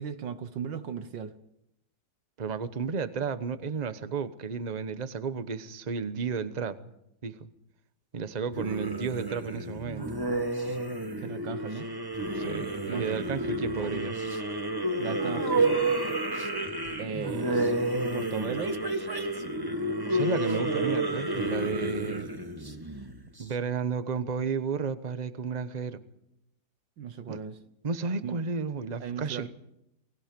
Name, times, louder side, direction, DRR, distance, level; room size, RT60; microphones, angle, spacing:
voice 1, 0.0-1.3 8.6-8.7 11.2-11.9 12.9-13.1 13.8-13.9 15.0-15.8 17.0-18.8 27.0-27.6 28.2-28.4 29.0-29.5, right 7 dB, 75° right, 1.8 m, -37 dB
voice 2, 2.4-6.8 7.2-7.5 8.1-10.2 12.2-14.2 20.0-22.3 23.4-26.0 27.3-27.4 27.8-29.5, right 5 dB, 30° right, 0.9 m, -32 dB
sound 1, 8.5-23.4, right 2 dB, 10° right, 1.6 m, -30 dB
29.5 x 19.5 x 5.3 m
omnidirectional pair, 2.0 m